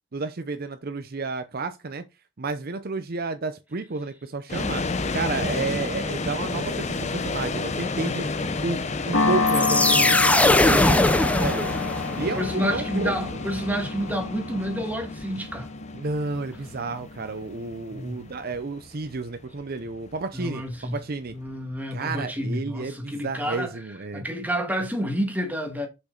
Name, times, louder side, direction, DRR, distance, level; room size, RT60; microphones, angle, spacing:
voice 1, 0.1-2.0 2.4-4.8 5.1-8.3 8.6-8.8 9.1-11.7 12.1-13.2 15.9-21.4 21.9-24.2, right 3 dB, 50° right, 0.7 m, -31 dB
sound 1, 4.5-21.5, left 3 dB, 35° left, 0.8 m, -32 dB
sound 2, 9.1-17.6, left 4 dB, 85° left, 1.7 m, -29 dB
sound 3, 9.5-12.3, left 2 dB, 5° left, 0.5 m, -20 dB
voice 2, 12.2-15.7 17.9-18.2 20.3-21.0 21.3-23.7 24.1-25.9, equal, 10° right, 1.7 m, -29 dB
6.3 x 5.9 x 3.9 m
head